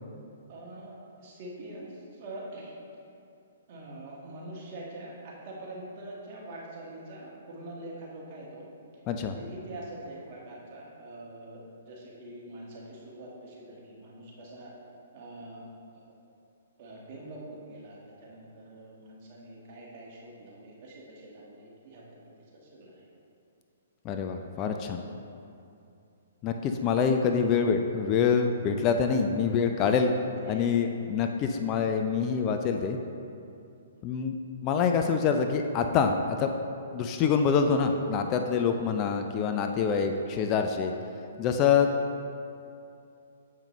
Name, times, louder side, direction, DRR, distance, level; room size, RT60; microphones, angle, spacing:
voice 1, 0.5-2.7 3.7-14.7 15.1-15.7 15.9-16.0 16.8-23.0 30.4-30.9 32.8-33.0 33.8-34.2 38.8-39.1 39.4-39.7, right 1 dB, 45° right, -4 dB, 1.4 m, -45 dB
voice 2, 24.0-25.0 26.4-30.1 30.5-33.0 34.0-34.3 34.6-36.5 36.9-40.9 41.4-41.9, left 6 dB, 30° left, 5 dB, 0.4 m, -26 dB
7.3 x 5.1 x 3.1 m, 2.6 s
hypercardioid pair, 130°, 0 cm